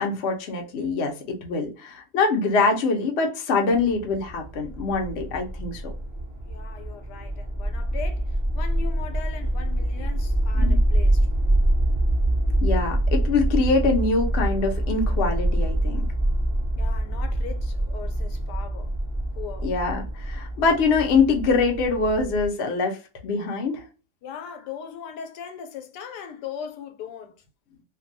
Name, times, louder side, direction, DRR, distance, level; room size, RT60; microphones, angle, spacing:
voice 1, 0.0-5.8 10.5-10.8 12.6-16.0 19.6-23.0 23.2-23.8, left 4 dB, 60° left, 0.7 m, -24 dB
sound 1, 3.7-22.5, right 1 dB, 10° right, 0.4 m, -25 dB
voice 2, 6.5-11.3 16.8-19.0 19.4-19.7 24.2-27.4, left 7 dB, 90° left, 1.2 m, -39 dB
2.6 x 2.2 x 2.5 m
omnidirectional pair, 1.7 m